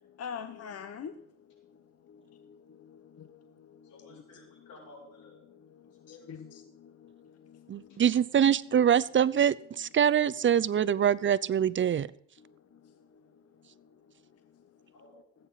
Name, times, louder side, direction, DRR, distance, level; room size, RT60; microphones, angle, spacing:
voice 1, 0.0-4.6 5.5-8.0 10.7-10.8 12.4-14.7, left 7 dB, 55° left, 1.0 m, -48 dB
voice 2, 3.8-5.4 6.1-6.5 7.9-8.0 14.9-15.3, left 2 dB, 90° left, 7.1 m, -54 dB
voice 3, 7.7-12.1, right 9 dB, 40° right, 0.5 m, -24 dB
19.5 x 9.2 x 4.1 m
cardioid pair, 90°, 30 cm